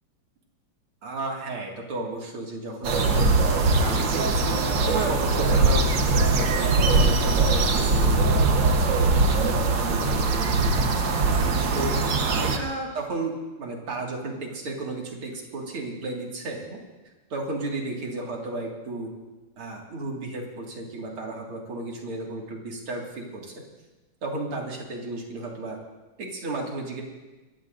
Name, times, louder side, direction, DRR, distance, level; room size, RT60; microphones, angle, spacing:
voice 1, 1.0-3.3 3.8-11.2 11.7-16.8 17.3-19.1 19.6-23.6 24.2-25.8 26.2-27.0, right 2 dB, 80° right, -1 dB, 3.0 m, -33 dB
sound 1, 2.8-12.6, right 3 dB, 60° right, 1.8 m, -21 dB
25.0 x 15.0 x 2.6 m, 1.2 s
omnidirectional pair, 2.4 m